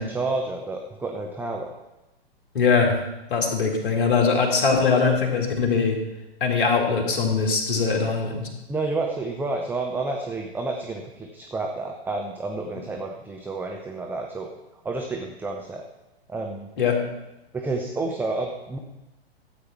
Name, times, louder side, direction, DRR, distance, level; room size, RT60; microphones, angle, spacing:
voice 1, 0.0-1.7 8.7-14.5 14.8-15.8 16.3-16.7 17.5-18.8, right 3 dB, 5° right, 2 dB, 0.7 m, -30 dB
voice 2, 2.5-3.0 3.3-6.0 6.4-8.5 16.8-17.0, left 5 dB, 55° left, 1 dB, 2.6 m, -21 dB
13.0 x 8.6 x 4.5 m, 0.97 s
figure-of-eight pair, 110°, 31 cm